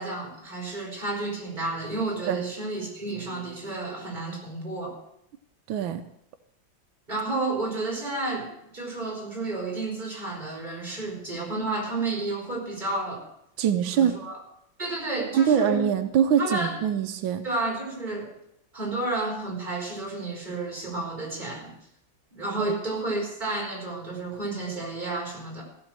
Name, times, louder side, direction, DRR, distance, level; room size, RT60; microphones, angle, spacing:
voice 1, 0.0-4.9 7.1-13.2 13.9-14.4 14.8-15.8 16.4-16.8 17.4-18.3 18.7-21.7 22.3-25.6, right 2 dB, 20° right, -2 dB, 4.0 m, -31 dB
voice 2, 5.7-6.0 13.6-14.2 15.3-17.4 22.6-22.7, right 8 dB, 90° right, 8 dB, 1.5 m, -23 dB
15.5 x 6.3 x 7.5 m, 0.77 s
omnidirectional pair, 2.1 m